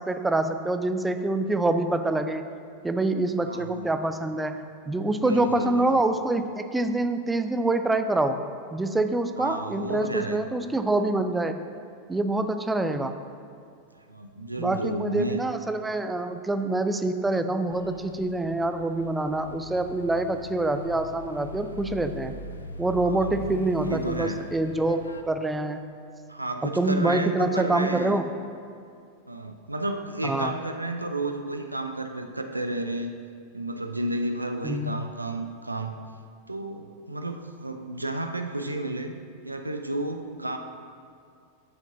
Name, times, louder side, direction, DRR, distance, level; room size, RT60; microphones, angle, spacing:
voice 1, 0.0-2.5 2.8-4.6 4.9-8.4 8.7-11.6 12.1-13.1 14.6-22.4 22.8-25.8 26.6-28.3 30.2-30.5 34.6-35.0, right 2 dB, 10° right, 8 dB, 0.5 m, -26 dB
voice 2, 3.4-3.9 5.2-5.9 9.4-10.5 14.1-15.4 23.0-23.4 23.8-24.4 26.3-28.2 29.3-33.2 33.5-35.9 36.5-39.2 39.4-40.6, right 1 dB, 85° right, 6 dB, 0.5 m, -32 dB
sound 1, 17.7-25.2, left 3 dB, 75° left, 0.4 m, -41 dB
11.5 x 7.2 x 2.6 m, 2.3 s
figure-of-eight pair, 90°, 0 cm